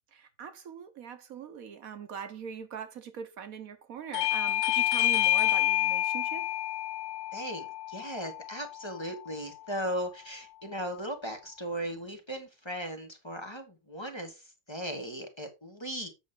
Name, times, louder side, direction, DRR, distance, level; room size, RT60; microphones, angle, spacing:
voice 1, 0.1-6.5, right 7 dB, 65° right, 1.3 m, -42 dB
Bell / Doorbell, 4.1-9.3, left 13 dB, 75° left, 1.1 m, -29 dB
voice 2, 7.3-14.4 14.7-16.1, equal, 20° left, 1.6 m, -37 dB
8.5 x 6.2 x 3.7 m
omnidirectional pair, 1.6 m